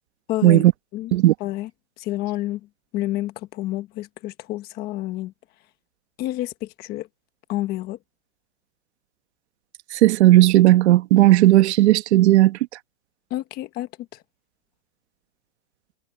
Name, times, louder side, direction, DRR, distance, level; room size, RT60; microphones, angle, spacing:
voice 1, 0.3-1.1 1.4-1.7 2.0-5.3 6.2-7.1 7.5-8.0 13.3-14.2, left 16 dB, 25° left, 1.2 m, -29 dB
voice 2, 9.9-12.6, right 15 dB, 55° right, 1.3 m, -15 dB
supercardioid pair, 170°, 39 cm